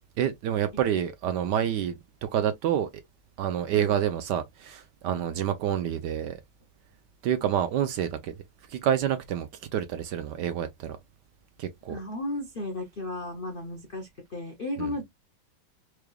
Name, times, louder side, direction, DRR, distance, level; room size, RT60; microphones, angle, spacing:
voice 1, 0.2-2.9 3.4-6.4 7.2-8.3 8.7-11.0 11.6-12.0 14.8-14.9, right 10 dB, 70° right, 1.0 m, -28 dB
voice 2, 11.9-15.0, left 2 dB, 70° left, 0.5 m, -34 dB
4.7 x 3.2 x 2.3 m
omnidirectional pair, 2.2 m